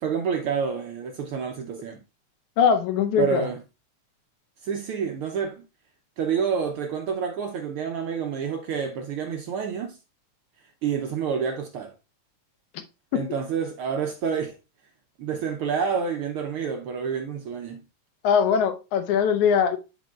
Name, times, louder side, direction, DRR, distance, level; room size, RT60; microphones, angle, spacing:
voice 1, 0.0-2.0 3.2-3.6 4.6-5.6 6.2-10.0 10.8-11.9 13.1-14.5 15.2-17.8, right 6 dB, 85° right, 1.2 m, -28 dB
voice 2, 2.6-3.5 13.1-13.3 18.2-19.8, left 7 dB, 85° left, 2.2 m, -21 dB
11.0 x 5.3 x 2.4 m
omnidirectional pair, 3.3 m